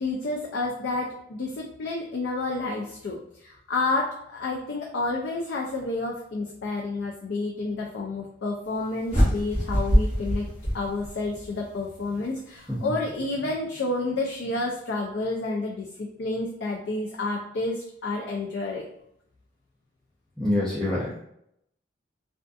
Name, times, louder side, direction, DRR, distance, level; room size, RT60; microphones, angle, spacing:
voice 1, 0.0-10.4 10.7-18.8, left 2 dB, 65° left, -1 dB, 0.4 m, -30 dB
sound 1, 9.1-11.5, equal, 30° left, 1.0 m, -24 dB
voice 2, 20.4-21.2, left 1 dB, ahead, -9 dB, 0.4 m, -26 dB
2.5 x 2.4 x 2.3 m, 0.75 s
head